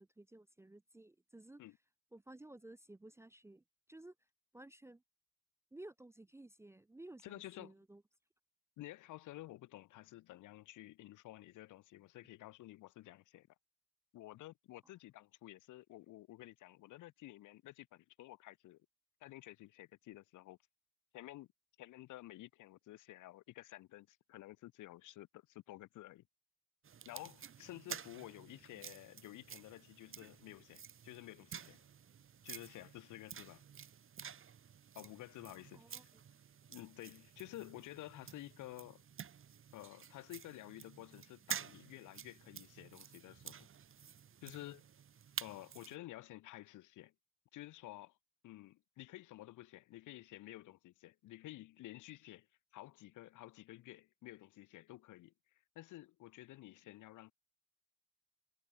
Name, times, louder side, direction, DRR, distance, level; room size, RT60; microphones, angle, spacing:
voice 1, 0.0-1.6 2.1-3.6 3.9-4.1 4.5-5.0 5.7-8.0 35.7-36.0, right 1 dB, 10° right, 0.4 m, -55 dB
voice 2, 7.2-7.7 8.8-13.5 14.1-18.8 19.2-20.6 21.1-21.5 21.8-26.2 27.0-31.8 32.4-33.6 34.9-36.1 36.7-39.0 39.7-43.7 44.4-44.8 45.4-47.1 47.5-48.2 48.4-52.5 52.7-55.3 55.7-57.3, left 16 dB, 90° left, 1.5 m, -52 dB
sound 1, 26.8-46.0, right 8 dB, 45° right, 1.4 m, -51 dB
cardioid pair, 90°, 30 cm